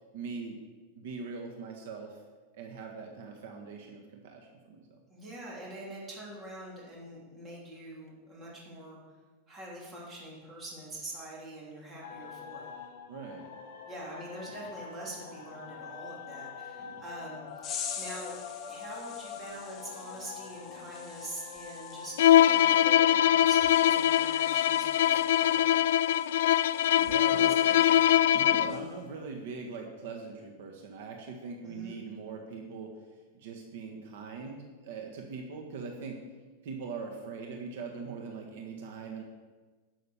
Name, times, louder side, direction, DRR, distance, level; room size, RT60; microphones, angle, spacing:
voice 1, 0.1-0.6 0.9-2.2 2.5-5.0 13.1-13.5 14.5-14.6 16.8-17.0 27.0-27.6 28.3-32.9 33.3-36.2 36.6-39.2, right 5 dB, 65° right, 2 dB, 1.6 m, -41 dB
voice 2, 5.1-9.0 9.5-12.7 13.9-17.7 18.0-18.4 18.7-25.7 27.2-28.6 31.6-32.0, right 1 dB, 15° right, -5 dB, 3.4 m, -44 dB
sound 1, 12.0-24.6, left 6 dB, 55° left, 1.4 m, -45 dB
sound 2, 17.6-28.3 28.7-29.0, left 8 dB, 25° left, 1.2 m, -46 dB
Bowed string instrument, 22.2-28.9, left 12 dB, 75° left, 0.3 m, -23 dB
12.0 x 6.6 x 6.9 m, 1.3 s
supercardioid pair, 165°, 0 cm